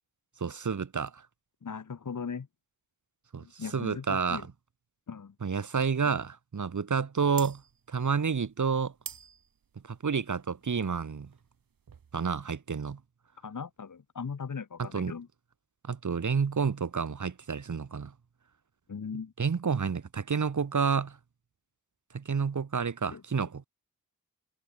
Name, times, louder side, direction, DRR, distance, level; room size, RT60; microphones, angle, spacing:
voice 1, 0.4-1.2 3.3-3.4 3.7-4.4 5.4-7.6 7.9-8.9 9.8-11.3 12.1-13.0 14.8-15.1 15.8-18.1 19.4-21.2 22.1-23.7, right 6 dB, 60° right, 3.4 m, -29 dB
voice 2, 1.6-2.5 3.4-4.5 5.1-5.3 13.4-15.3 18.9-19.3 23.1-23.2, left 6 dB, 60° left, 4.6 m, -38 dB
sound 1, 7.3-12.4, right 7 dB, 80° right, 7.2 m, -48 dB
cardioid pair, 75°, 34 cm